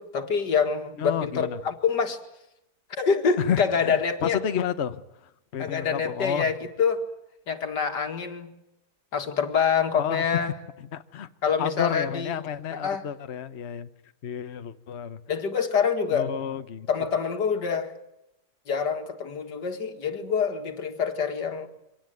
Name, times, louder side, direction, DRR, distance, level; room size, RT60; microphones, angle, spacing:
voice 1, 0.0-2.2 2.9-4.4 5.6-7.0 7.5-8.5 9.1-10.5 11.4-12.3 12.7-13.0 15.3-16.3 16.9-17.9 18.7-21.7, left 6 dB, 85° left, 5 dB, 2.6 m, -26 dB
voice 2, 1.0-1.6 3.4-5.0 5.5-6.5 10.0-10.2 10.9-11.3 11.6-13.9 14.2-15.2 16.1-16.9, left 8 dB, 45° left, 10 dB, 1.1 m, -30 dB
25.0 x 18.0 x 9.3 m, 0.85 s
omnidirectional pair, 1.8 m